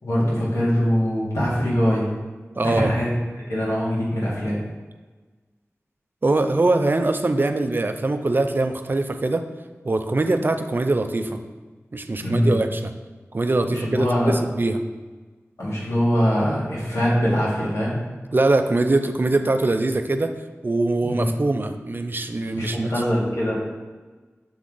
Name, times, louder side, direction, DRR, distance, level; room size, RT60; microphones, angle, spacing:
voice 1, 0.0-2.1 2.6-3.1 3.5-4.6 12.2-12.6 13.7-14.3 15.6-18.0 21.0-21.3 22.6-23.6, equal, 85° left, -6 dB, 1.7 m, -22 dB
voice 2, 2.5-2.9 6.2-9.4 9.8-11.4 11.9-12.9 13.3-14.8 18.3-20.3 20.6-22.9, right 2 dB, 45° right, 7 dB, 0.5 m, -22 dB
7.0 x 3.7 x 3.8 m, 1.3 s
wide cardioid pair, 50°, 5 cm